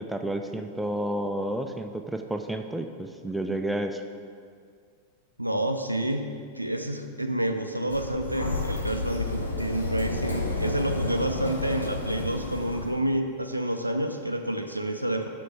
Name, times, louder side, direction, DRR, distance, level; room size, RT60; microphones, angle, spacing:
voice 1, 0.0-4.0, right 1 dB, 5° right, 5 dB, 0.3 m, -31 dB
voice 2, 5.4-6.3 6.6-15.3, right 1 dB, 85° right, 6 dB, 0.3 m, -29 dB
Sliding door, 7.9-12.9, left 2 dB, 80° left, 0.7 m, -31 dB
5.2 x 5.2 x 5.5 m, 2.1 s
figure-of-eight pair, 90°, 0 cm